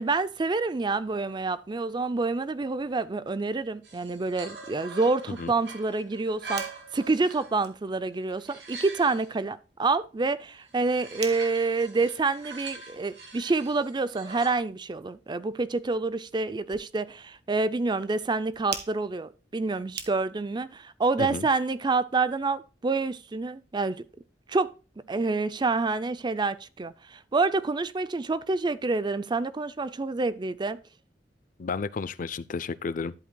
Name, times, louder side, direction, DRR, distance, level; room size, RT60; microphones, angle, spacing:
voice 1, 0.0-24.0 24.5-24.7 25.1-30.8, right 3 dB, 25° right, 0.4 m, -28 dB
sound 1, 3.8-7.7 8.1-9.3 10.7-14.6, right 3 dB, 80° right, 2.7 m, -43 dB
sound 2, 6.4-20.6, right 8 dB, 65° right, 1.3 m, -47 dB
voice 2, 31.6-33.1, left 4 dB, 50° left, 0.5 m, -32 dB
11.5 x 8.1 x 2.3 m
head